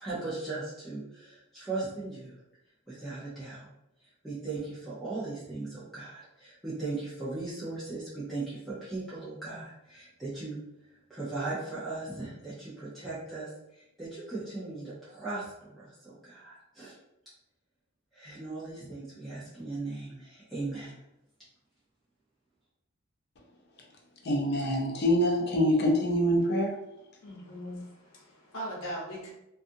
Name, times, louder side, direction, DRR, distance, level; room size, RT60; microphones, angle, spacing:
voice 1, 0.0-2.4 2.9-3.7 4.2-10.6 11.1-16.9 18.1-21.0, right 3 dB, ahead, -11 dB, 0.7 m, -38 dB
voice 2, 24.2-26.7, equal, 50° left, 0 dB, 0.5 m, -25 dB
voice 3, 27.2-29.3, equal, 75° left, -4 dB, 0.9 m, -40 dB
2.5 x 2.4 x 2.6 m, 0.87 s
head